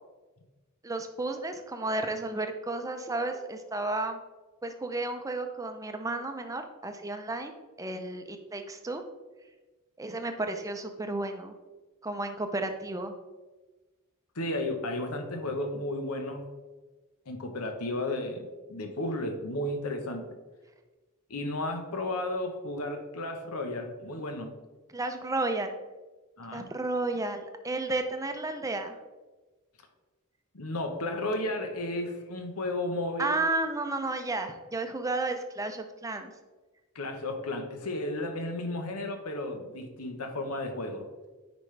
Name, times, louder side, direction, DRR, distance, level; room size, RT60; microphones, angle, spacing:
voice 1, 0.8-4.2 4.6-7.5 7.8-9.0 10.0-11.5 12.0-13.1 24.9-25.7 26.5-29.0 33.2-36.3, right 2 dB, 15° right, 6 dB, 0.6 m, -32 dB
voice 2, 14.3-16.4 17.3-20.2 21.3-24.5 26.4-26.6 30.5-33.4 36.9-41.1, left 1 dB, 90° left, 5 dB, 1.0 m, -33 dB
9.4 x 5.1 x 3.3 m, 1.2 s
head